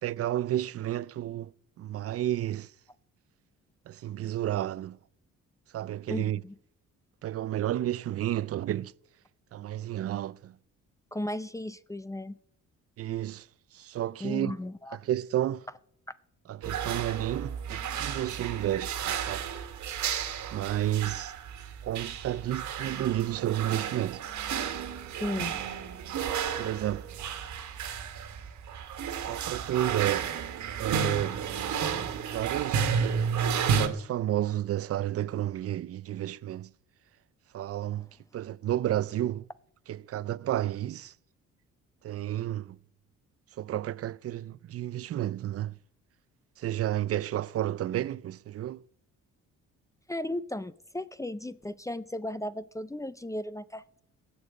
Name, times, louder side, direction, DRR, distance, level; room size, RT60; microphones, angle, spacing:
voice 1, 0.0-2.7 3.9-5.0 5.7-6.4 7.2-8.9 9.5-10.6 13.0-13.5 13.7-14.6 15.0-15.7 16.5-19.5 20.5-21.3 21.8-24.2 26.6-27.1 29.2-30.3 30.8-31.4 32.3-32.9 33.8-36.7 37.5-38.1 38.3-39.4 39.9-41.1 42.0-42.8 43.6-45.8 46.6-48.8, right 12 dB, 50° right, 0.5 m, -31 dB
voice 2, 6.1-6.5 11.1-12.4 14.2-15.0 25.2-25.6 50.1-54.0, left 1 dB, 10° left, 0.5 m, -35 dB
sound 1, 16.6-33.9, right 7 dB, 70° right, 1.6 m, -32 dB
16.5 x 7.0 x 8.5 m
cardioid pair, 90°, 30 cm